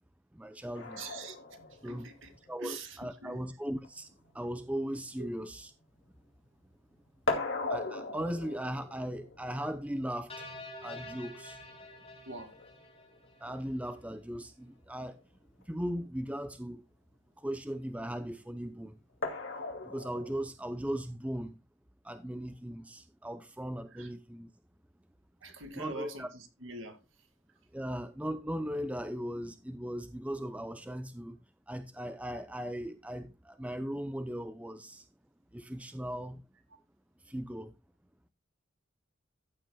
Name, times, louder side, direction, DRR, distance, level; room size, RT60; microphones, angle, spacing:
voice 1, 0.3-1.0 1.8-2.1 2.5-5.7 7.7-10.3 10.8-11.6 13.4-15.2 15.6-16.8 17.4-19.0 19.8-21.6 22.0-24.5 25.8-26.3 27.7-31.4 31.7-35.1 35.5-36.4 37.2-37.8, equal, 5° right, 0.6 m, -38 dB
sound 1, 0.7-6.5 6.7-13.8 15.2-15.3 15.6-15.7 19.2-20.4, left 2 dB, 60° left, 2.5 m, -40 dB
voice 2, 0.9-2.3 2.6-3.4 5.2-5.3 12.3-12.5 23.9-24.1 25.4-27.6, right 3 dB, 70° right, 2.2 m, -45 dB
sound 2, 10.3-13.6, left 2 dB, 30° left, 3.0 m, -48 dB
14.5 x 8.0 x 2.3 m
head